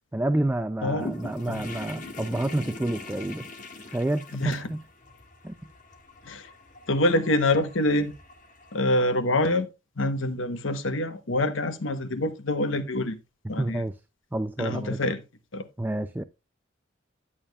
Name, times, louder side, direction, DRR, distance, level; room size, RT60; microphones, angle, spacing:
voice 1, 0.1-3.5 3.9-4.2 4.5-4.8 5.4-5.5 13.6-14.0 14.3-15.0 15.8-16.2, right 1 dB, 10° right, 0.3 m, -28 dB
sound 1, 1.0-9.0, left 2 dB, 40° left, 1.6 m, -42 dB
voice 2, 6.9-8.1 8.7-9.7 10.0-13.2 13.5-13.8 14.6-15.2 15.5-15.6, left 1 dB, 80° left, 1.0 m, -25 dB
11.0 x 8.6 x 2.4 m
head